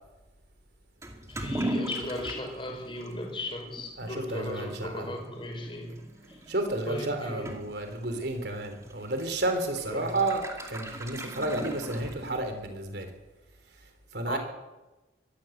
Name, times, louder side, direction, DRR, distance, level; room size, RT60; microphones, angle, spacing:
Toilet flush / Liquid, 1.0-12.7, right 1 dB, 15° right, 2.4 m, -40 dB
voice 1, 1.3-5.9 6.3-6.4 6.9-7.5 9.9-10.1 14.3-14.4, left 1 dB, 30° left, 2 dB, 5.0 m, -36 dB
voice 2, 4.0-5.1 6.5-13.1 14.1-14.4, right 2 dB, 65° right, 6 dB, 3.8 m, -31 dB
23.0 x 15.0 x 8.1 m, 1.1 s
head